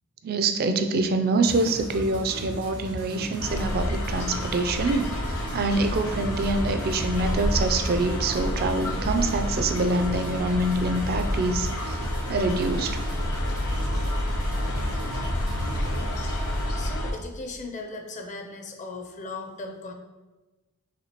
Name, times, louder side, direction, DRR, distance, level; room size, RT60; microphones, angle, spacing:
voice 1, 0.2-12.0 12.3-13.0, right 2 dB, 45° right, 8 dB, 0.3 m, -25 dB
sound 1, 1.4-16.7, right 1 dB, 85° right, 1.3 m, -37 dB
sound 2, 3.4-17.1, left 1 dB, 80° left, 0.7 m, -29 dB
voice 2, 16.8-19.9, left 3 dB, 35° left, 3 dB, 0.5 m, -37 dB
5.8 x 2.8 x 2.9 m, 1.2 s
head